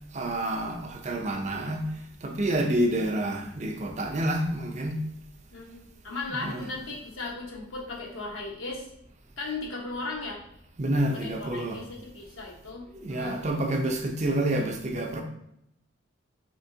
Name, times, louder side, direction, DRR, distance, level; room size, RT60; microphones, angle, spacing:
voice 1, 0.1-1.9 2.2-5.0 6.3-6.7 10.8-11.8 12.9-15.2, right 1 dB, 35° right, 4 dB, 0.5 m, -28 dB
voice 2, 5.5-8.9 9.4-10.4 11.1-13.4, left 3 dB, 75° left, -3 dB, 1.1 m, -37 dB
4.4 x 2.9 x 2.7 m, 0.76 s
head